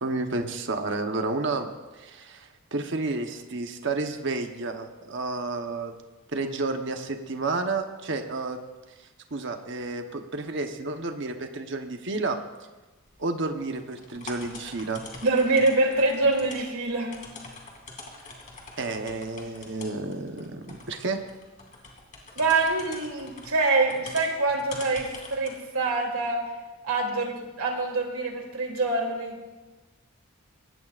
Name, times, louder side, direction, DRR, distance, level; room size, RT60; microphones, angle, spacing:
voice 1, 0.0-5.9 6.3-8.6 9.3-12.4 13.2-15.0 18.8-21.2, right 3 dB, 55° right, 5 dB, 1.1 m, -31 dB
sound 1, 13.1-25.6, left 3 dB, 35° left, 2.6 m, -45 dB
voice 2, 15.2-17.1 22.4-26.4 26.8-29.4, right 3 dB, 75° right, 1 dB, 2.9 m, -25 dB
23.5 x 18.5 x 2.5 m, 1.2 s
head